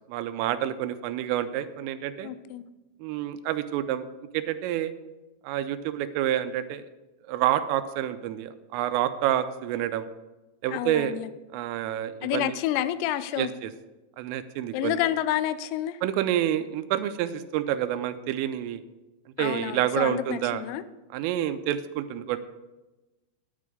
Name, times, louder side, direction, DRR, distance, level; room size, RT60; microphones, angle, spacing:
voice 1, 0.1-2.3 3.0-4.0 4.3-4.9 5.4-6.8 7.3-10.1 10.6-11.2 11.5-12.5 13.4-13.7 14.2-15.0 16.0-18.8 19.4-20.6 21.1-22.4, right 12 dB, 85° right, 11 dB, 3.1 m, -28 dB
voice 2, 2.2-2.7 10.7-11.3 12.2-13.5 14.7-16.0 19.4-20.8, left 12 dB, 90° left, 14 dB, 3.3 m, -29 dB
10.5 x 9.4 x 4.9 m, 1.1 s
omnidirectional pair, 5.9 m